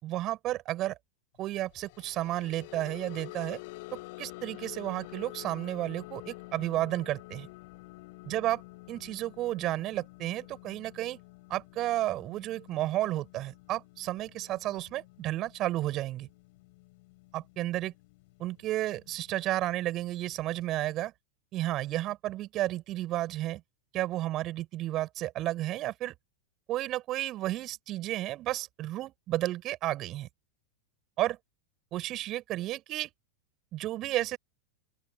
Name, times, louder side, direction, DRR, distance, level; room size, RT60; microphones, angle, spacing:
voice 1, 0.0-1.0 1.4-3.6 3.9-7.5 8.3-8.6 8.9-11.2 11.5-16.3 17.3-17.9 18.4-21.1 21.5-23.6 23.9-26.1 26.7-30.3 31.2-31.4 31.9-33.1 33.7-34.4, right 15 dB, 35° right, 5.7 m, -32 dB
sound 1, 1.7-18.1 18.5-18.8 19.1-19.3, left 23 dB, 50° left, 4.2 m, -48 dB
open air
figure-of-eight pair, 90°, 0 cm